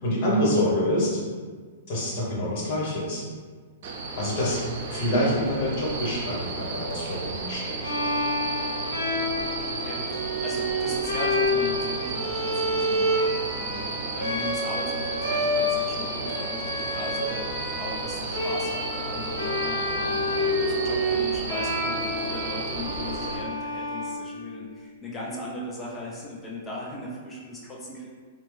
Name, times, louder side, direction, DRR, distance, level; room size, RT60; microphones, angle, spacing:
voice 1, 0.0-1.2 1.9-3.2 4.2-4.6 4.9-7.7, left 1 dB, 50° left, -5 dB, 1.3 m, -26 dB
sound 1, 3.8-23.4, right 3 dB, 55° right, 0.5 m, -33 dB
Bowed string instrument, 7.8-24.7, left 1 dB, 80° left, 0.8 m, -29 dB
voice 2, 9.7-13.2 13.6-28.1, left 2 dB, 20° left, -4 dB, 0.6 m, -38 dB
3.0 x 2.1 x 3.3 m, 1.5 s
hypercardioid pair, 125°, 0 cm